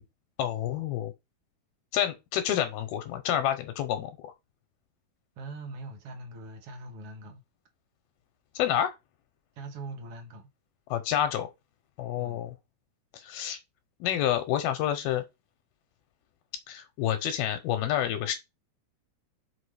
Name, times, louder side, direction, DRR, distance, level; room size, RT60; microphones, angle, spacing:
voice 1, 0.4-1.1 1.9-4.3 8.6-8.9 10.9-11.5 12.0-12.5 13.1-13.6 14.0-15.2 16.7-18.3, left 11 dB, 80° left, 2.5 m, -28 dB
voice 2, 5.4-7.4 9.6-10.5 12.2-12.4, right 2 dB, 45° right, 2.2 m, -42 dB
6.2 x 5.0 x 4.9 m
omnidirectional pair, 4.8 m